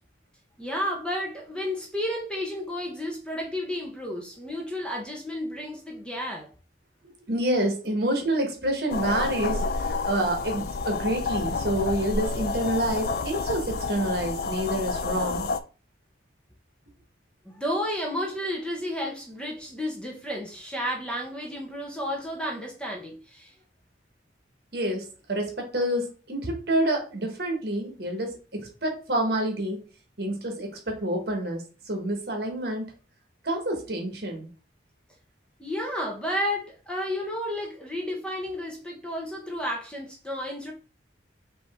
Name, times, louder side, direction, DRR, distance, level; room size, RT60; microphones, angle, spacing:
voice 1, 0.6-6.5 17.4-23.5 35.6-40.7, equal, 5° left, 0.9 m, -32 dB
voice 2, 7.0-15.5 24.7-29.8 30.2-32.8 33.4-34.5, right 1 dB, 55° right, 1.4 m, -28 dB
sound 1, 8.9-15.6, left 4 dB, 55° left, 0.4 m, -29 dB
5.4 x 2.8 x 3.5 m
head